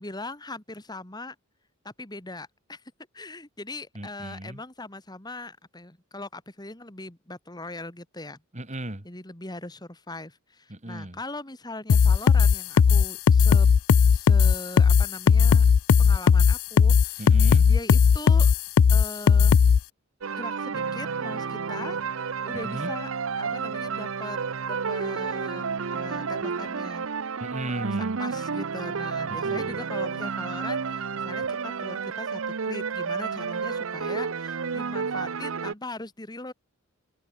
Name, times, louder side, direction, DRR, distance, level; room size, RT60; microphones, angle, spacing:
voice 1, 0.0-1.4 1.8-2.8 3.1-8.4 9.0-13.7 14.1-15.7 16.0-17.3 17.6-18.5 18.9-19.6 20.3-22.0 22.4-23.1 23.4-24.4 24.7-25.6 25.9-27.1 28.0-36.5, left 2 dB, 20° left, 2.3 m, -40 dB
voice 2, 3.9-4.6 8.5-9.1 10.7-11.2 17.2-17.7 22.5-22.9 27.4-28.2 29.3-29.8, right 1 dB, 35° right, 2.7 m, -36 dB
sound 1, 11.9-19.8, left 6 dB, 80° left, 0.4 m, -17 dB
sound 2, 20.2-35.7, right 5 dB, 75° right, 0.7 m, -31 dB
head